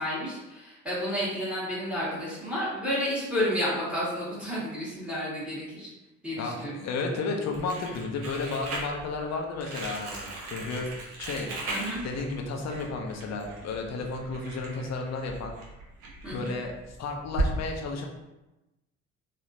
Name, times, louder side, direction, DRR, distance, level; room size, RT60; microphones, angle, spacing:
voice 1, 0.0-5.9 6.2-6.8 11.7-12.0 16.2-16.6, equal, 5° right, -7 dB, 1.4 m, -31 dB
voice 2, 6.4-10.9 11.2-11.5 12.0-15.5 16.3-18.0, left 3 dB, 45° left, 1 dB, 0.7 m, -33 dB
Crumpling crinkling, 7.5-17.5, right 2 dB, 65° right, 0.9 m, -37 dB
3.4 x 2.4 x 2.7 m, 1.0 s
figure-of-eight pair, 50°, 38 cm